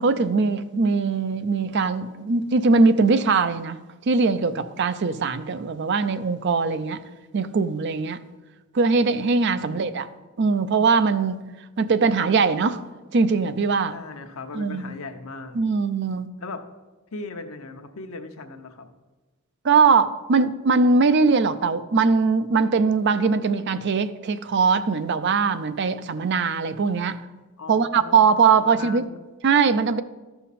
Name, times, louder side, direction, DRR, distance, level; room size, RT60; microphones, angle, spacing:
voice 1, 0.0-3.8 4.1-7.0 7.3-8.2 8.7-10.1 10.4-11.4 11.8-12.8 13.1-14.0 14.5-14.9 15.5-16.3 19.6-27.2 27.7-29.1 29.4-30.0, right 4 dB, 55° right, 12 dB, 0.5 m, -21 dB
voice 2, 9.4-10.3 13.9-15.6 16.4-16.6 17.1-18.9 27.6-29.3, left 3 dB, 80° left, 6 dB, 0.9 m, -38 dB
13.0 x 5.8 x 4.2 m, 1.2 s
head